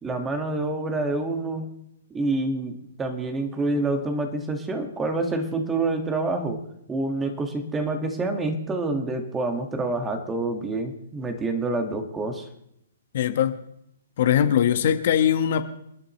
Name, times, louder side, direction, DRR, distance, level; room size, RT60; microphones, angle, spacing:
voice 1, 0.0-1.7 2.1-6.6 6.9-12.5, right 2 dB, 15° right, 5 dB, 1.9 m, -27 dB
voice 2, 13.1-13.6 14.2-15.6, left 9 dB, 55° left, 8 dB, 1.3 m, -21 dB
29.0 x 9.8 x 3.2 m, 0.75 s
hypercardioid pair, 135°, 0 cm